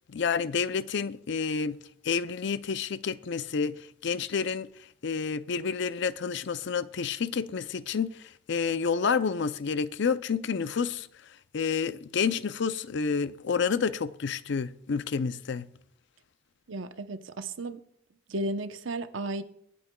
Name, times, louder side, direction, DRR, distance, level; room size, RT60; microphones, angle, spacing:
voice 1, 0.1-1.8 2.0-4.7 5.0-11.1 11.5-15.7, left 5 dB, 65° left, 0.5 m, -29 dB
voice 2, 16.7-17.8 18.3-19.4, right 2 dB, 80° right, 0.8 m, -34 dB
24.0 x 8.5 x 2.3 m
head